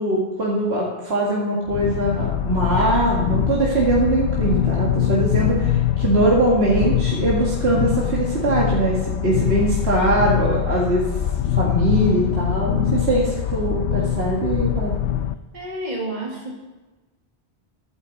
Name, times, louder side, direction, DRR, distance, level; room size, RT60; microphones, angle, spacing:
voice 1, 0.0-11.1 11.5-15.0, right 2 dB, 65° right, -5 dB, 2.2 m, -21 dB
sound 1, 1.7-15.3, left 10 dB, 85° left, 0.9 m, -23 dB
voice 2, 15.5-16.5, right 1 dB, 40° right, -2 dB, 2.1 m, -29 dB
22.5 x 9.8 x 4.1 m, 1.2 s
omnidirectional pair, 1.1 m